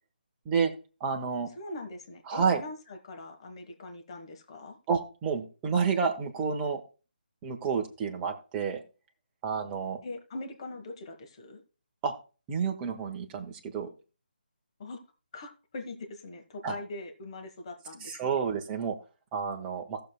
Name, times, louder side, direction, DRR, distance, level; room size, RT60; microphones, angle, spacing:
voice 1, 1.0-1.5 2.3-2.6 4.9-6.8 7.4-8.8 9.4-10.0 12.0-12.1 12.5-13.9 16.6-16.7 18.0-18.9 19.3-20.0, right 6 dB, 15° right, 3 dB, 1.0 m, -29 dB
voice 2, 1.6-4.8 10.0-11.6 14.8-15.0 15.3-18.3, left 2 dB, 35° left, 5 dB, 1.2 m, -42 dB
17.0 x 6.7 x 2.2 m, 0.34 s
figure-of-eight pair, 150°, 5 cm